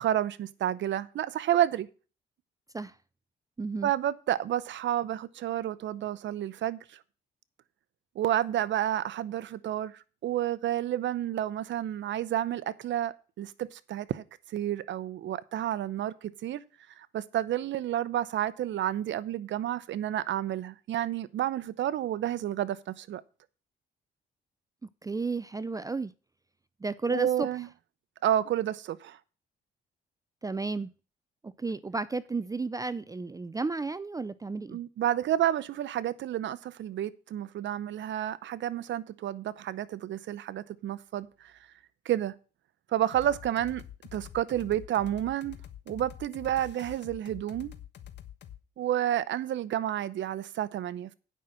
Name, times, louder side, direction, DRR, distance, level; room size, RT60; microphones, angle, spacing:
voice 1, 0.0-1.9 3.8-7.0 8.1-16.6 17.0-23.2 27.1-27.7 28.2-29.2 34.7-41.5 42.0-42.3 42.9-43.8 44.1-45.6 45.9-47.7 48.8-51.1, right 11 dB, 70° right, 0.8 m, -30 dB
voice 2, 3.6-3.9 25.0-26.1 26.8-27.5 30.4-30.9 31.4-34.8, right 3 dB, 15° right, 0.5 m, -32 dB
sound 1, 43.1-48.6, left 10 dB, 60° left, 1.3 m, -47 dB
9.3 x 5.7 x 7.5 m
cardioid pair, 90°, 20 cm